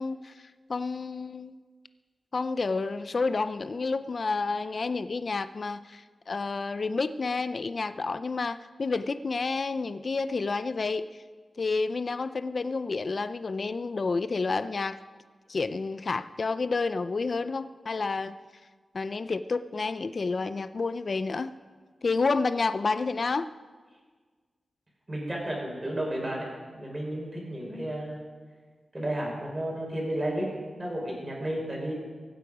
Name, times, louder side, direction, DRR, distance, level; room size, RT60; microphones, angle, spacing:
voice 1, 0.0-1.6 2.3-11.0 11.6-15.0 15.5-18.4 18.9-21.5 22.0-23.5, left 4 dB, 40° left, 12 dB, 0.4 m, -30 dB
voice 2, 25.1-28.3 28.9-31.9, right 1 dB, 20° right, -2 dB, 5.0 m, -32 dB
23.0 x 9.4 x 5.0 m, 1.5 s
wide cardioid pair, 160°, 0 cm